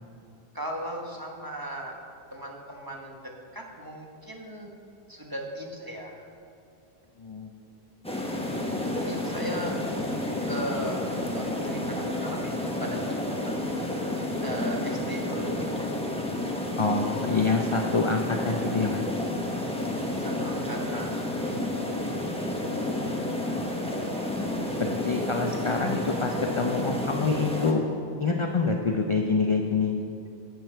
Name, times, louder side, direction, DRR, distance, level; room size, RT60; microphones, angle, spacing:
voice 1, 0.5-2.0 2.3-4.8 5.1-6.2 8.9-9.7 10.5-13.7 14.4-15.6 20.0-21.1, equal, 20° right, 0 dB, 1.1 m, -37 dB
voice 2, 7.2-7.5 16.8-19.1 24.8-27.8 28.2-30.3, left 4 dB, 35° left, 2 dB, 0.5 m, -26 dB
sound 1, 8.0-27.7, left 1 dB, 5° left, 1.0 m, -30 dB
11.0 x 8.2 x 4.5 m, 2.6 s
omnidirectional pair, 1.1 m